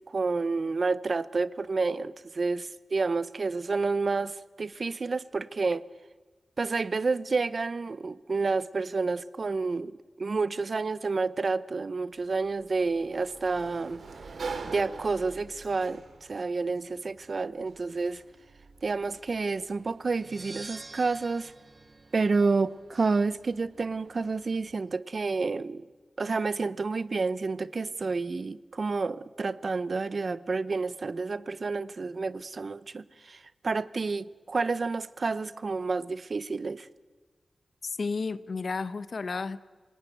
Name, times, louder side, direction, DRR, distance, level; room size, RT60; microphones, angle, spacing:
voice 1, 0.1-5.8 6.6-14.0 14.6-16.0 16.3-18.2 18.8-21.5 22.1-25.8 26.2-36.9, right 4 dB, 50° right, 0.7 m, -29 dB
Sliding door, 12.1-24.7, right 4 dB, 90° right, 2.3 m, -46 dB
sound 1, 20.1-22.9, right 3 dB, 35° right, 1.1 m, -47 dB
voice 2, 37.8-39.6, left 4 dB, 60° left, 0.9 m, -32 dB
27.0 x 18.0 x 9.3 m
wide cardioid pair, 115°, 0 cm